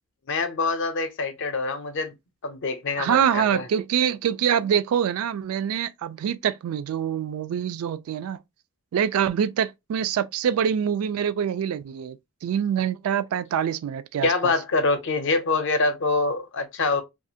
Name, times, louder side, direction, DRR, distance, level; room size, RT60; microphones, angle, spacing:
voice 1, 0.3-2.1 2.4-3.7 14.2-17.0, left 3 dB, 60° left, 0.6 m, -25 dB
voice 2, 3.0-8.4 8.9-12.2 12.4-14.5, right 8 dB, 80° right, 0.3 m, -25 dB
2.4 x 2.4 x 2.6 m
head